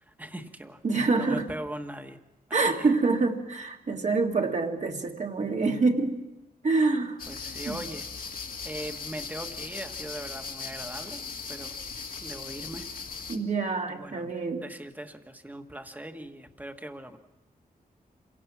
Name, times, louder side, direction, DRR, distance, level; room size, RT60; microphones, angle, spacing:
voice 1, 0.2-0.8 1.2-2.2 2.5-2.9 5.4-5.9 7.3-8.0 8.6-11.2 11.5-11.8 12.2-12.9 13.9-17.2, right 1 dB, 10° right, 6 dB, 1.4 m, -40 dB
voice 2, 0.8-1.5 2.5-6.2 6.6-7.2 7.7-7.8 13.3-14.6, right 3 dB, 50° right, 3 dB, 2.0 m, -26 dB
sound 1, 7.2-13.4, left 5 dB, 65° left, 2.0 m, -38 dB
27.5 x 17.5 x 6.0 m, 0.99 s
wide cardioid pair, 115°, 15 cm